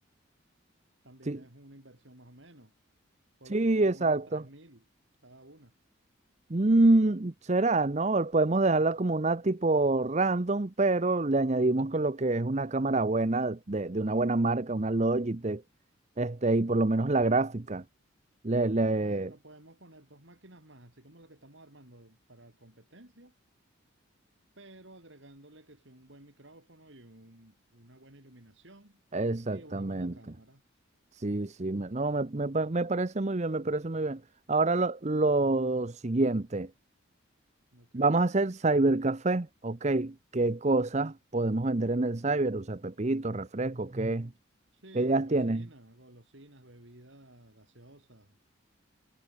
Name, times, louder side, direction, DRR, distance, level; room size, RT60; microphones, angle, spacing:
voice 1, 1.0-2.7 3.4-4.8 5.2-5.7 18.9-23.3 24.6-29.0 29.5-30.6 37.7-38.3 44.7-48.4, right 1 dB, 65° right, 4.6 m, -54 dB
voice 2, 3.5-4.4 6.5-15.6 16.2-17.8 18.4-19.3 29.1-30.1 31.1-34.2 34.5-36.7 37.9-44.3 44.9-45.6, right 2 dB, 35° right, 0.8 m, -27 dB
head